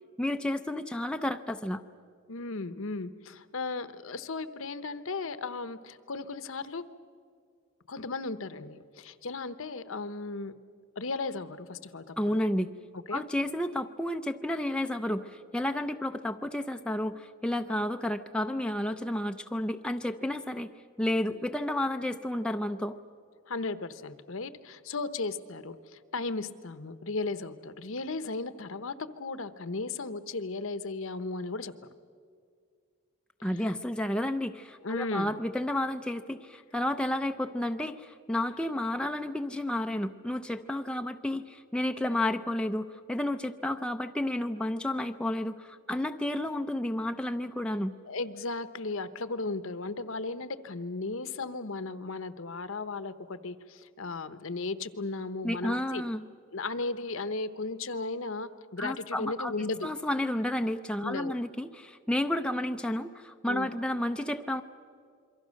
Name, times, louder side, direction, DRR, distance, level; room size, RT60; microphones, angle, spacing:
voice 1, 0.2-1.8 12.2-12.7 13.1-20.7 21.0-23.0 33.4-47.9 55.4-56.2 58.8-64.6, left 1 dB, 5° left, 5 dB, 0.5 m, -31 dB
voice 2, 2.3-6.8 7.9-10.5 11.0-12.5 13.1-13.2 23.5-31.7 33.6-33.7 34.8-35.3 48.0-56.0 56.5-59.9 61.0-61.3 63.5-63.7, left 3 dB, 65° left, 12 dB, 0.9 m, -36 dB
27.5 x 23.5 x 6.4 m, 2.2 s
head